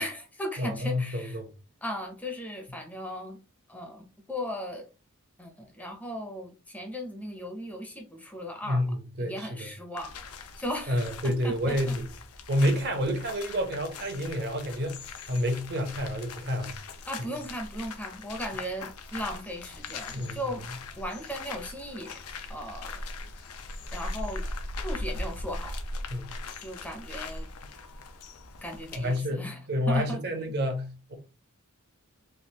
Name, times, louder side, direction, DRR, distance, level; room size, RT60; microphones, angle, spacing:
voice 1, 0.0-1.4 1.8-3.4 3.7-4.9 5.4-8.8 9.2-12.0 17.1-20.6 21.0-22.2 22.5-23.0 23.9-24.4 24.8-25.8 26.6-27.5 28.6-29.6 29.9-30.2, equal, 5° left, 0.6 m, -37 dB
voice 2, 0.6-1.5 8.7-9.7 10.9-12.1 12.5-16.7 20.1-20.6 26.1-26.4 28.9-31.2, equal, 50° right, 0.8 m, -29 dB
sound 1, 10.0-29.2, left 2 dB, 90° left, 0.6 m, -40 dB
3.4 x 2.4 x 2.8 m
head